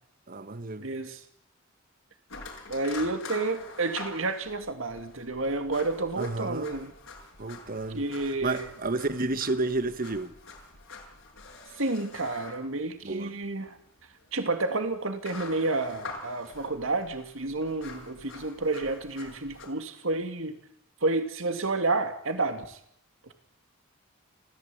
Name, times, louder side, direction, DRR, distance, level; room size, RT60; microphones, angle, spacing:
voice 1, 0.3-0.9 6.2-6.7 7.4-10.3 13.0-13.3, right 2 dB, 45° right, 1.5 m, -31 dB
voice 2, 0.8-1.2 2.7-6.9 7.9-8.7 11.8-13.8 14.3-20.6 21.0-22.8 23.2-23.3, right 2 dB, 70° right, 2.5 m, -30 dB
sound 1, 2.3-19.7, left 3 dB, 75° left, 6.6 m, -45 dB
29.5 x 15.5 x 8.7 m
head